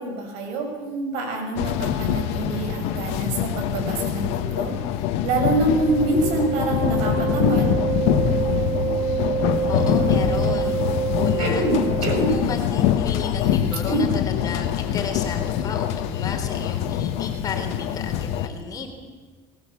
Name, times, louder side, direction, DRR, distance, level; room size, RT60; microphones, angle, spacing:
voice 1, 0.0-4.8 5.2-7.8 11.4-12.3 13.9-14.0, right 2 dB, 75° right, 3 dB, 6.7 m, -25 dB
sound 1, 1.6-18.5, left 10 dB, 75° left, 1.5 m, -24 dB
Wind instrument woodwind instrument, 5.6-12.6, right 8 dB, 35° right, 0.9 m, -27 dB
voice 2, 9.7-10.8 11.1-11.7 12.1-19.1, left 5 dB, 35° left, 4 dB, 3.7 m, -33 dB
20.5 x 19.0 x 8.6 m, 1.3 s
cardioid pair, 145°, 11 cm